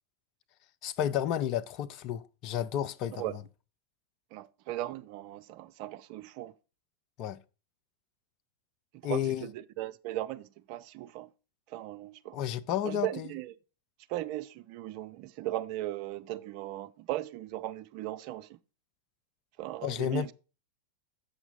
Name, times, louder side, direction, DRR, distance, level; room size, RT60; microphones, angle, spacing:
voice 1, 0.8-3.4 7.2-7.4 9.0-9.5 12.3-13.3 19.8-20.3, left 10 dB, 40° left, 0.5 m, -32 dB
voice 2, 4.3-6.5 9.0-11.3 11.7-12.4 12.8-13.5 14.1-18.6 19.6-20.3, right 14 dB, 45° right, 0.4 m, -37 dB
8.1 x 5.8 x 3.9 m
figure-of-eight pair, 90°, 0 cm